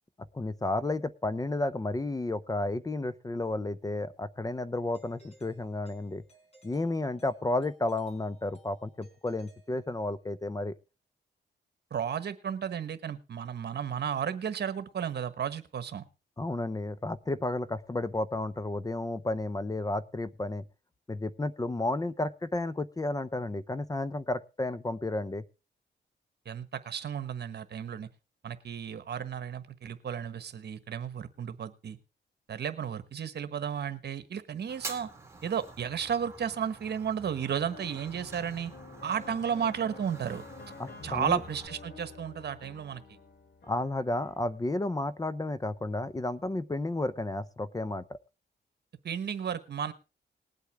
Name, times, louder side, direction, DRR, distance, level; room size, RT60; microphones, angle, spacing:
voice 1, 0.3-6.2 6.6-10.7 16.4-20.6 21.1-25.4 40.8-41.4 43.7-48.2, left 2 dB, 20° left, 15 dB, 0.7 m, -32 dB
Doorbell, 4.9-10.4, right 2 dB, 35° left, 4.2 m, -61 dB
voice 2, 11.9-16.0 26.4-28.1 28.4-32.0 32.5-35.1 35.4-38.7 39.0-40.4 41.0-43.0 49.0-49.9, right 8 dB, 60° right, 11 dB, 1.3 m, -33 dB
Fire, 34.7-41.7, right 3 dB, 15° right, 2.0 m, -47 dB
sound 1, 37.7-44.4, left 4 dB, 60° left, 2.6 m, -49 dB
20.0 x 8.3 x 3.5 m, 0.31 s
cardioid pair, 95°, 19 cm